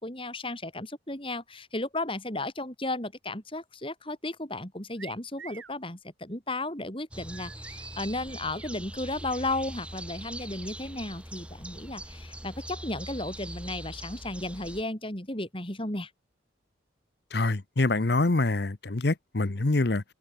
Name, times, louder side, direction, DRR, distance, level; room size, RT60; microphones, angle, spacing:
voice 1, 0.0-16.1, left 2 dB, 30° left, 4.2 m, -34 dB
sound 1, 5.0-5.8 7.3-8.8, right 7 dB, 75° right, 2.4 m, -48 dB
sound 2, 7.1-14.8, right 1 dB, 5° right, 6.4 m, -42 dB
voice 2, 17.3-20.0, left 2 dB, 55° left, 0.9 m, -25 dB
head